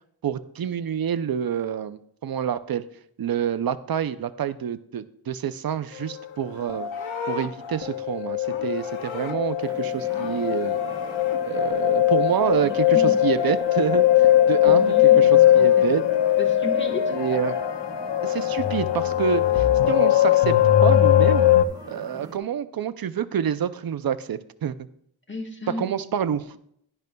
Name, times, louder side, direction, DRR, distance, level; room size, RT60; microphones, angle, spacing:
voice 1, 0.2-2.8 3.2-6.9 7.3-10.8 11.4-16.0 17.1-17.6 18.2-20.5 20.8-21.4 21.9-24.7 25.7-26.6, right 8 dB, 50° right, 13 dB, 0.5 m, -27 dB
sound 1, 6.1-6.2 6.7-7.3 7.6-21.6, left 12 dB, 65° left, 0.6 m, -20 dB
Livestock farm animals working animals, 6.4-9.8 10.1-11.4 15.2-16.3, left 5 dB, 80° left, 0.8 m, -38 dB
sound 2, 9.6-22.4, right 1 dB, 10° right, 1.2 m, -43 dB
voice 2, 12.6-13.2 14.6-15.9 16.4-17.2 25.3-25.9, left 2 dB, 25° left, 3 dB, 1.2 m, -33 dB
11.0 x 10.5 x 2.2 m, 0.70 s
wide cardioid pair, 110°, 47 cm